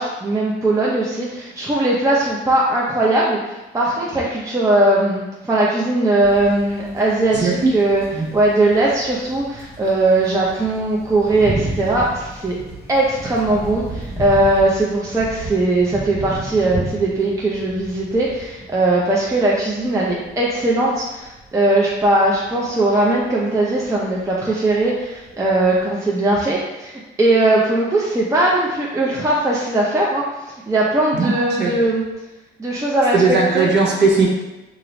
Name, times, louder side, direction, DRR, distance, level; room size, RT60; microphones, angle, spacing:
voice 1, 0.0-8.0 8.3-12.6 12.9-32.0 32.6-33.7, right 2 dB, 15° right, -4 dB, 0.5 m, -19 dB
sound 1, 6.2-25.9, right 1 dB, 85° right, 1.4 m, -33 dB
voice 2, 7.3-7.7 8.1-8.3 31.1-31.8 33.1-34.3, right 4 dB, 60° right, -2 dB, 0.7 m, -18 dB
2.9 x 2.5 x 3.0 m, 1.0 s
cardioid pair, 90°, 20 cm